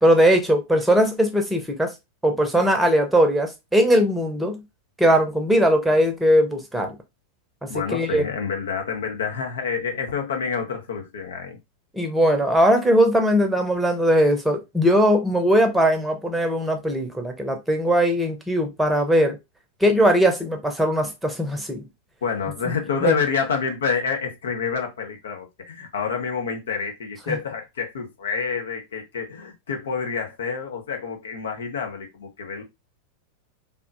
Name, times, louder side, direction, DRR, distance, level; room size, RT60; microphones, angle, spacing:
voice 1, 0.0-1.9 2.2-4.6 5.0-6.9 7.6-8.2 11.9-19.4 19.8-21.9 22.6-22.7 23.0-23.2 27.3-27.4, equal, 5° right, 0.9 m, -20 dB
voice 2, 7.7-11.6 22.2-32.6, left 6 dB, 65° left, 0.8 m, -28 dB
3.6 x 2.8 x 2.6 m
figure-of-eight pair, 90°, 0 cm